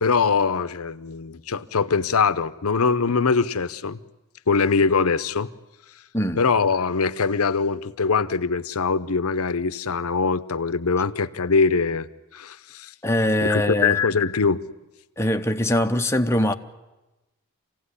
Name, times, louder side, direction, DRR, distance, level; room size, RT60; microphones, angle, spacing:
voice 1, 0.0-4.0 4.5-5.5 6.4-12.1 12.3-12.9 13.4-14.6, left 5 dB, 80° left, 0.8 m, -22 dB
voice 2, 13.0-14.0 15.2-16.5, left 1 dB, 10° left, 0.8 m, -22 dB
26.5 x 16.5 x 9.9 m
head